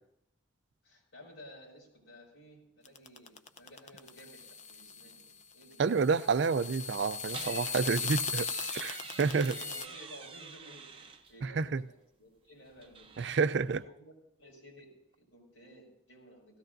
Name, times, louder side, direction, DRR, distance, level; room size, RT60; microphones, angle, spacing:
voice 1, 0.8-5.8 8.0-8.8 9.1-13.1 13.8-14.1 14.4-16.6, equal, 80° left, -3 dB, 5.4 m, -55 dB
sound 1, 2.8-9.9, left 5 dB, 35° left, 0.6 m, -38 dB
voice 2, 5.8-8.4 8.7-9.5 11.4-11.8 13.2-13.8, right 5 dB, 60° right, 14 dB, 0.4 m, -29 dB
sound 2, 7.3-11.3 12.6-13.8, right 5 dB, 30° right, 0.7 m, -47 dB
17.5 x 15.5 x 2.6 m, 0.74 s
head